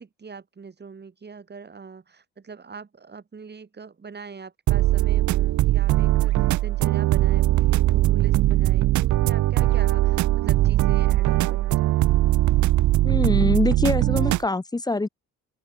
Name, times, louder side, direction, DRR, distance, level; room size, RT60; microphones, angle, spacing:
voice 1, 0.0-12.3, right 5 dB, 35° right, 5.4 m, -42 dB
sound 1, 4.7-14.4, right 16 dB, 70° right, 0.7 m, -20 dB
voice 2, 13.0-15.1, left 2 dB, 15° left, 1.0 m, -24 dB
open air
cardioid pair, 90°, 30 cm